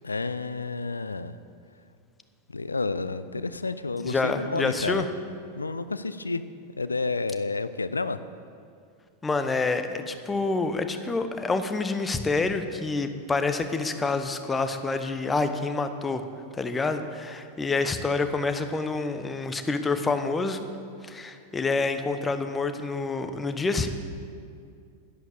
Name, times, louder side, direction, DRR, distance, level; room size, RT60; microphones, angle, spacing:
voice 1, 0.0-1.3 2.5-5.0 5.5-6.4 6.8-8.2, left 3 dB, 80° left, 14 dB, 0.4 m, -30 dB
voice 2, 4.0-5.1 9.2-16.2 16.5-20.7 21.0-23.9, left 3 dB, 15° left, 8 dB, 0.9 m, -27 dB
11.5 x 11.0 x 6.7 m, 2.4 s
figure-of-eight pair, 90°, 0 cm